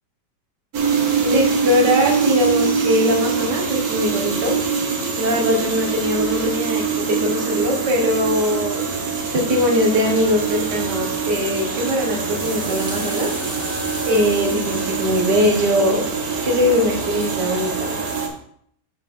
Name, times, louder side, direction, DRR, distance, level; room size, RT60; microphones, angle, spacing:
sound 1, 0.7-18.3, right 5 dB, 65° right, 1.6 m, -24 dB
voice 1, 1.2-4.6 5.2-8.8 9.3-13.3 14.1-16.0 16.4-18.0, left 1 dB, 80° right, 2 dB, 1.9 m, -21 dB
sound 2, 11.8-16.6, equal, 10° right, 1.5 m, -38 dB
6.0 x 4.7 x 5.3 m, 0.68 s
omnidirectional pair, 1.8 m